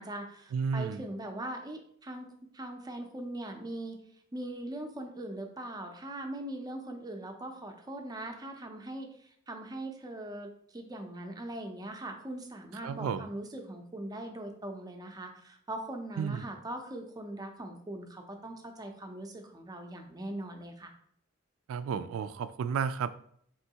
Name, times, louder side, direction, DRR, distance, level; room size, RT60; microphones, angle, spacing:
voice 1, 0.0-4.0 4.3-20.9, right 1 dB, 20° right, 4 dB, 0.5 m, -41 dB
voice 2, 0.5-1.0 12.8-13.3 16.2-16.5 21.7-23.1, right 6 dB, 90° right, 13 dB, 0.3 m, -32 dB
4.4 x 3.0 x 2.8 m, 0.65 s
head